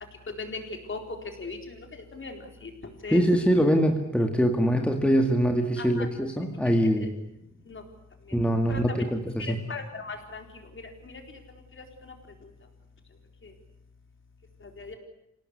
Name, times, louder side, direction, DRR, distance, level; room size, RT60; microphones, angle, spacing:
voice 1, 0.3-0.6 0.9-1.0 1.4-3.2 5.8-6.1 6.8-7.1 7.7-7.8 8.3-8.4 8.7-9.0 9.4-10.4 10.7-11.2 11.8-12.1 13.4-13.5 14.8-15.0, left 4 dB, 40° left, 4 dB, 4.2 m, -39 dB
voice 2, 3.1-7.1 8.3-9.6, equal, 5° left, 3 dB, 2.0 m, -23 dB
27.0 x 18.0 x 9.8 m, 0.81 s
wide cardioid pair, 140°, 30 cm